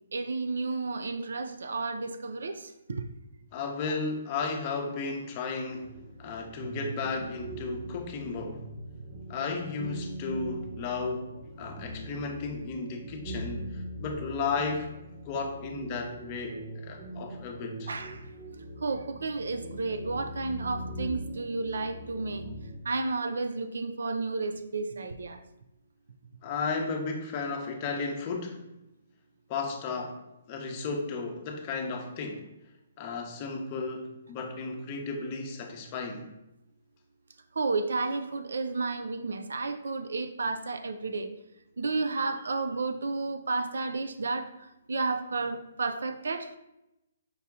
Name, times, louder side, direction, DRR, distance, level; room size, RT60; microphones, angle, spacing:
voice 1, 0.1-3.1 17.9-18.3 18.8-22.5 22.8-25.4 37.5-41.3 41.8-46.5, right 3 dB, 85° right, 8 dB, 0.4 m, -32 dB
voice 2, 3.5-5.9 6.2-8.7 9.3-14.9 15.2-17.9 26.4-28.6 29.5-30.2 30.5-32.5 33.0-36.3, left 4 dB, 25° left, 2 dB, 0.7 m, -34 dB
sound 1, 5.7-22.8, right 1 dB, 35° right, 0.8 m, -41 dB
5.4 x 2.8 x 3.5 m, 0.89 s
hypercardioid pair, 165°, 0 cm